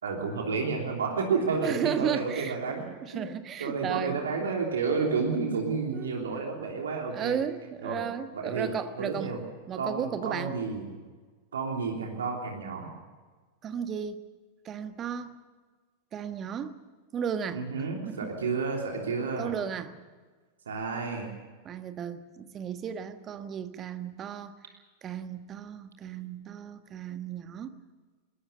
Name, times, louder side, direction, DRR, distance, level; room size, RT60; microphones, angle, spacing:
voice 1, 0.0-2.8 3.1-3.3 3.6-7.4 7.8-8.0 8.3-8.7 9.0-9.4 9.8-10.9 11.5-12.9 17.5-19.5 20.7-21.3, right 4 dB, 65° right, 1 dB, 3.2 m, -31 dB
voice 2, 1.6-4.2 5.9-6.1 7.1-10.5 13.6-14.2 14.6-15.4 16.1-16.8 17.1-17.6 18.1-18.3 19.2-19.9 21.6-24.6 25.0-27.8, right 8 dB, 30° right, 10 dB, 1.4 m, -34 dB
21.0 x 20.0 x 6.9 m, 1.4 s
figure-of-eight pair, 90°, 0 cm